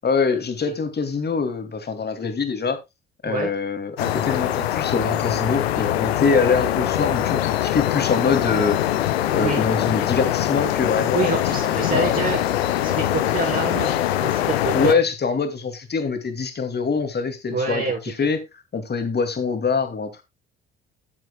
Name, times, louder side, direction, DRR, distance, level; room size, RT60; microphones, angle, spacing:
voice 1, 0.0-2.8 3.2-12.2 14.7-18.4 18.7-20.2, left 5 dB, 35° left, 2.4 m, -24 dB
sound 1, 4.0-15.0, left 12 dB, 80° left, 0.8 m, -23 dB
voice 2, 9.3-9.6 11.1-12.5 12.8-15.0 17.5-18.1, right 4 dB, 45° right, 4.8 m, -27 dB
15.0 x 7.5 x 2.3 m
hypercardioid pair, 50°, 30 cm